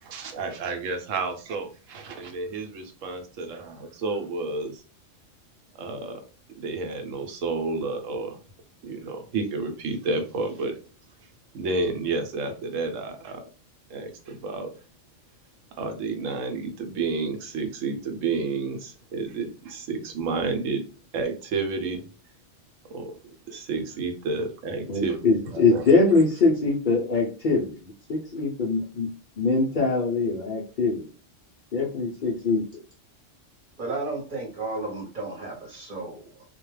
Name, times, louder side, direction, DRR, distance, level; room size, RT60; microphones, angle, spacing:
voice 1, 0.0-4.8 5.8-6.2 6.6-8.4 8.8-10.7 11.5-13.4 13.9-14.7 15.8-20.8 21.1-22.0 22.9-23.1 23.5-25.2 25.5-25.8, right 3 dB, 85° right, 5 dB, 1.0 m, -30 dB
voice 2, 24.9-29.1 29.4-31.1 31.7-32.6, left 3 dB, 55° left, -3 dB, 0.5 m, -23 dB
voice 3, 33.8-36.4, right 3 dB, 45° right, 0 dB, 0.9 m, -33 dB
2.3 x 2.2 x 3.1 m, 0.36 s
omnidirectional pair, 1.3 m